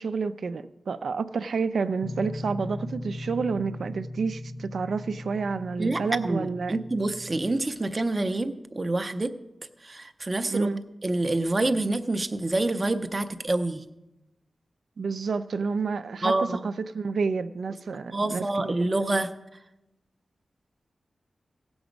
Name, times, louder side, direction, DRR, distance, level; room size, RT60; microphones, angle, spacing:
voice 1, 0.0-6.8 10.5-10.8 15.0-18.8, right 4 dB, 70° right, 0.5 m, -29 dB
sound 1, 2.0-7.6, left 1 dB, 25° left, 0.4 m, -38 dB
voice 2, 5.8-9.3 9.8-10.7 11.0-13.8 16.2-16.7 18.1-19.3, right 2 dB, 25° right, 0.6 m, -27 dB
17.0 x 7.0 x 5.2 m
wide cardioid pair, 170°, 0 cm